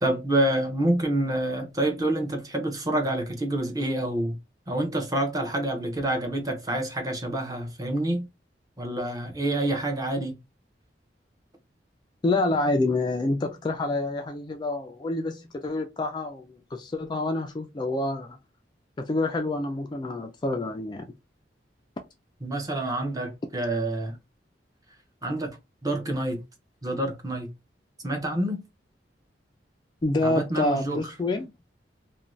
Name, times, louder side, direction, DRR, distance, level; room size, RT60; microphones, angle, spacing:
voice 1, 0.0-4.4 4.7-8.3 8.8-10.3 22.4-24.2 25.2-25.5 25.8-26.4 26.8-27.5 28.0-28.6 30.2-31.0, right 1 dB, 20° right, 0.6 m, -27 dB
voice 2, 12.2-18.4 19.0-21.1 30.0-31.5, left 2 dB, 25° left, 0.3 m, -27 dB
2.5 x 2.2 x 3.0 m
head